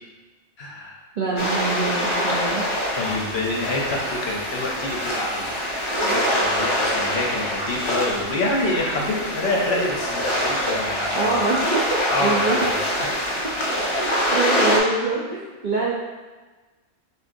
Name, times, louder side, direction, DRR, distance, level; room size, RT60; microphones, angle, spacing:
voice 1, 0.6-1.0 3.0-11.3 12.1-13.1, left 2 dB, 55° left, -2 dB, 0.8 m, -27 dB
voice 2, 1.2-2.6 11.1-12.7 13.9-15.9, right 3 dB, 60° right, -5 dB, 0.5 m, -25 dB
sound 1, 1.4-14.8, equal, 35° left, 0.5 m, -25 dB
6.0 x 2.5 x 2.5 m, 1.3 s
omnidirectional pair, 1.4 m